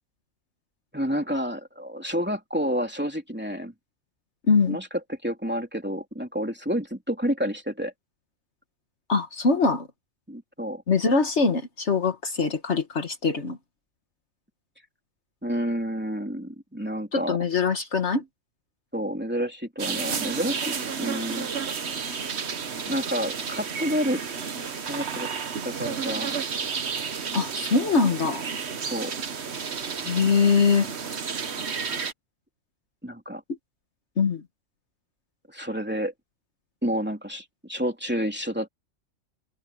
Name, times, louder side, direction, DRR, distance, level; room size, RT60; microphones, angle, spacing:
voice 1, 0.9-3.7 4.7-7.9 10.3-10.8 15.4-17.4 18.9-21.5 22.9-24.2 24.9-25.3 25.6-26.4 28.9-29.1 33.0-33.4 35.5-36.1 36.8-38.7, equal, 10° right, 3.2 m, -29 dB
voice 2, 4.5-4.8 9.1-9.9 10.9-13.6 17.1-18.2 27.3-28.4 30.0-30.9 34.2-34.4, left 4 dB, 60° left, 1.7 m, -22 dB
sound 1, 19.8-32.1, right 6 dB, 60° right, 1.5 m, -31 dB
omnidirectional pair, 1.3 m